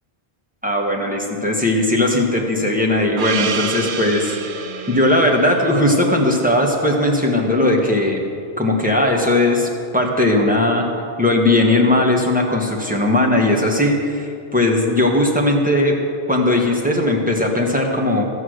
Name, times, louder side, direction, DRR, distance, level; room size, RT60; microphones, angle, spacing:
voice 1, 0.6-4.4 4.9-8.2 8.6-10.8 11.2-16.0 16.3-18.2, left 1 dB, 10° right, -1 dB, 1.3 m, -18 dB
Gong, 3.2-7.9, right 6 dB, 60° right, 0.8 m, -30 dB
13.0 x 8.1 x 6.4 m, 2.4 s
omnidirectional pair, 1.1 m